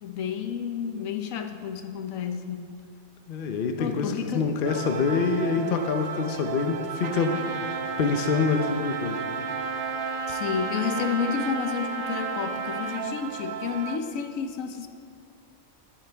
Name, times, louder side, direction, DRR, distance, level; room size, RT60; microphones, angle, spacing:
voice 1, 0.0-2.7 3.8-4.5 5.6-5.7 10.3-14.9, left 7 dB, 70° left, 6 dB, 1.1 m, -31 dB
voice 2, 3.3-7.3 8.0-9.2, left 4 dB, 50° left, 5 dB, 0.8 m, -26 dB
sound 1, 4.6-14.0, right 7 dB, 80° right, 1.1 m, -36 dB
Trumpet, 7.0-13.1, right 3 dB, 60° right, 0.5 m, -33 dB
13.0 x 9.0 x 3.4 m, 2.4 s
omnidirectional pair, 1.5 m